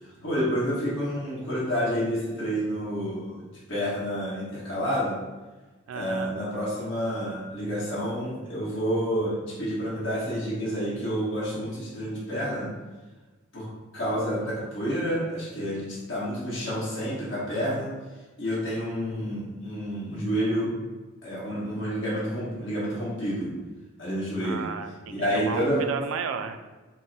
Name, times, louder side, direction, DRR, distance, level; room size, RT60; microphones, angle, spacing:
voice 1, 0.1-5.2 5.9-12.7 13.5-13.7 13.9-17.9 18.4-20.7 21.2-23.6 24.0-24.7 25.1-25.8, equal, 60° left, -8 dB, 1.3 m, -29 dB
voice 2, 5.9-6.4 24.4-26.6, right 6 dB, 75° right, 8 dB, 0.3 m, -34 dB
3.8 x 2.1 x 3.9 m, 1.2 s
head